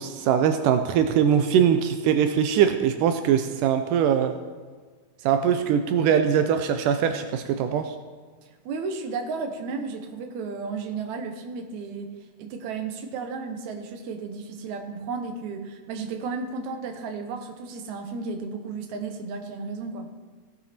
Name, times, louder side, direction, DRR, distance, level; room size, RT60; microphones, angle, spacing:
voice 1, 0.0-4.3 5.3-7.9, right 8 dB, 85° right, 8 dB, 2.2 m, -22 dB
voice 2, 8.7-12.1 12.4-20.1, right 4 dB, 70° right, 6 dB, 2.3 m, -33 dB
16.5 x 9.5 x 4.3 m, 1.5 s
omnidirectional pair, 3.7 m